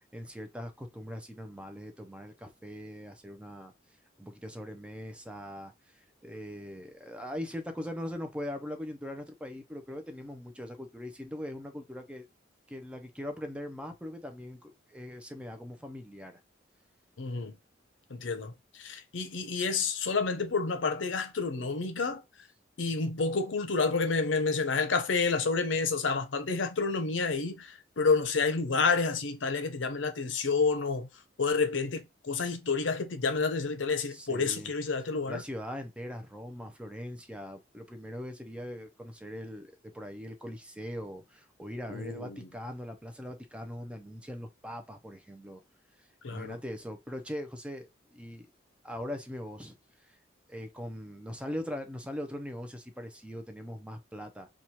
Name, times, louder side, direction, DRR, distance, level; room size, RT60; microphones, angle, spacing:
voice 1, 0.1-3.7 4.2-12.3 12.7-16.4 34.1-34.7 35.1-45.6 46.0-48.5 48.8-50.2 50.5-54.5, equal, 5° right, 0.5 m, -41 dB
voice 2, 17.2-17.5 18.1-18.5 18.8-22.2 22.8-31.1 31.4-35.4 41.9-42.5 46.2-46.5, left 4 dB, 80° left, 0.7 m, -29 dB
3.0 x 2.3 x 4.2 m
head